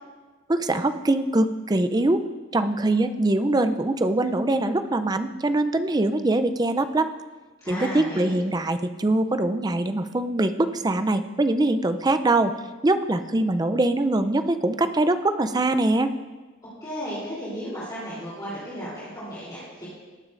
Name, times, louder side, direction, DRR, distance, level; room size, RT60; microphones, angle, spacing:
voice 1, 0.5-2.2 2.5-7.1 7.7-12.5 12.8-16.1, right 2 dB, 20° right, 10 dB, 0.4 m, -23 dB
voice 2, 7.6-8.3 16.8-19.8, equal, 20° left, -10 dB, 3.3 m, -34 dB
19.0 x 9.4 x 2.5 m, 1.3 s
head